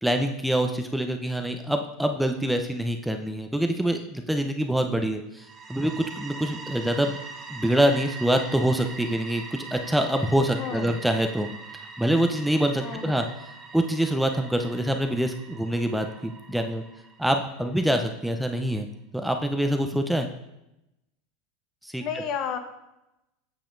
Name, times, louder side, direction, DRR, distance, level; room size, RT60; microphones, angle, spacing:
voice 1, 0.0-7.2 7.5-11.5 12.0-13.3 13.7-16.8 17.2-18.9 19.1-20.3 21.8-22.0, right 1 dB, 5° right, 5 dB, 0.6 m, -25 dB
sound 1, 5.4-18.1, right 4 dB, 35° right, 1.0 m, -42 dB
voice 2, 10.6-11.0 12.8-13.2 22.0-22.6, left 7 dB, 50° left, 6 dB, 1.0 m, -32 dB
8.8 x 6.8 x 2.6 m, 0.90 s
hypercardioid pair, 85°, 0 cm